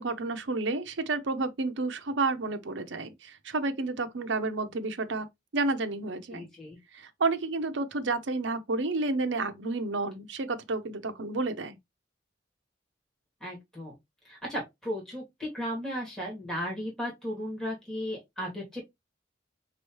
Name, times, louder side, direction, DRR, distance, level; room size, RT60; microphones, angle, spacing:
voice 1, 0.0-5.3 5.5-6.5 6.9-11.8, right 3 dB, 70° right, 0.7 m, -30 dB
voice 2, 6.3-6.8 13.4-13.9 14.2-18.8, equal, 5° left, 2.1 m, -35 dB
5.4 x 3.0 x 3.0 m
head